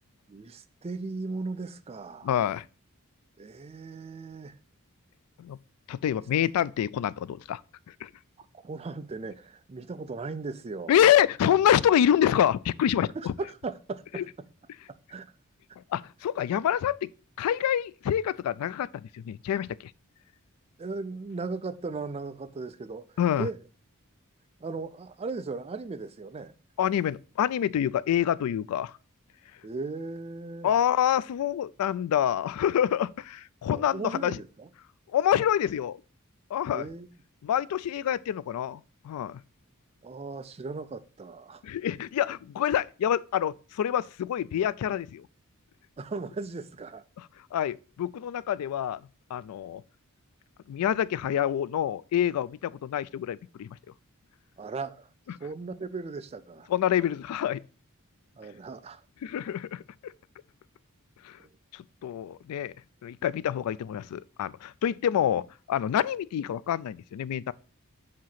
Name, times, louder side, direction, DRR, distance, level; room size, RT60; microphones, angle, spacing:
voice 1, 0.3-2.3 3.4-4.6 8.5-11.0 13.2-14.3 14.9-15.3 20.8-23.0 23.4-23.6 24.6-26.5 29.6-30.7 33.7-34.7 36.7-37.1 40.0-41.6 46.0-47.0 54.6-55.1 55.4-56.7 58.4-59.0 61.4-61.5, right 3 dB, 25° right, 0.4 m, -37 dB
voice 2, 2.2-2.6 5.4-5.6 5.9-7.6 8.0-8.1 10.9-13.3 14.2-14.3 15.9-17.1 17.4-19.7 23.2-23.5 26.8-28.9 30.6-34.4 35.1-36.0 36.5-36.9 37.4-39.4 41.6-45.3 47.5-49.0 49.3-49.8 50.7-53.8 56.7-57.6 59.2-60.1 61.2-61.4 61.7-62.7 63.0-67.5, left 10 dB, 85° left, 0.3 m, -27 dB
7.4 x 2.8 x 5.8 m
head